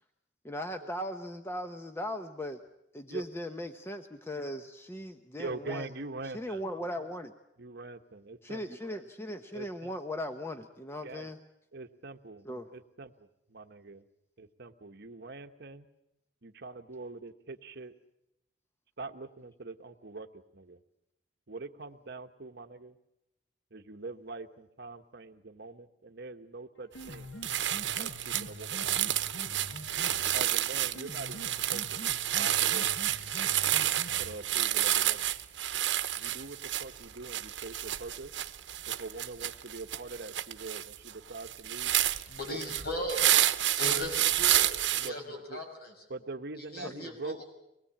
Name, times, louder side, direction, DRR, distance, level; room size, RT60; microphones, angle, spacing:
voice 1, 0.4-2.6 2.9-5.9 6.3-7.3 8.4-11.4 12.4-12.7 46.8-47.1, equal, 15° left, 6 dB, 0.9 m, -38 dB
voice 2, 5.4-6.6 7.6-8.6 9.5-9.9 11.0-11.3 11.7-13.1 13.5-14.0 14.4-15.9 16.4-17.9 19.0-20.3 20.5-20.8 21.5-23.0 23.7-27.3 28.0-29.1 30.3-33.0 34.2-35.3 36.2-38.3 38.9-41.9 42.5-43.1 44.1-44.2 45.0-45.6 46.1-47.4, right 3 dB, 60° right, 8 dB, 1.2 m, -43 dB
Piano, 26.8-34.7, left 1 dB, 80° left, 1.4 m, -46 dB
sound 1, 27.0-27.2 27.4-45.1, right 12 dB, 80° right, 0.9 m, -30 dB
voice 3, 42.3-43.2 43.8-44.7 44.9-45.9 46.7-47.4, left 1 dB, 55° left, 3 dB, 6.4 m, -37 dB
25.0 x 20.0 x 8.7 m, 0.87 s
head